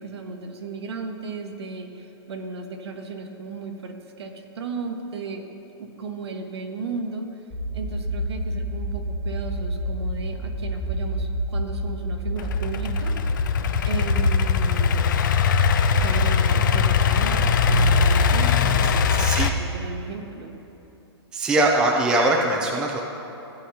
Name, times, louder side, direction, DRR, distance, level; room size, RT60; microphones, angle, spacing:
voice 1, 0.0-5.5 5.8-7.4 7.7-13.2 13.8-15.1 16.0-20.6, right 4 dB, 75° right, 3 dB, 1.3 m, -35 dB
sound 1, 7.5-19.5, equal, 25° left, 1.6 m, -29 dB
Idling / Accelerating revving vroom, 12.4-19.5, left 6 dB, 45° left, 0.5 m, -21 dB
voice 2, 19.2-19.5 21.3-23.0, right 2 dB, 5° right, 0 dB, 0.4 m, -21 dB
16.0 x 9.2 x 2.8 m, 2.9 s
hypercardioid pair, 165°, 14 cm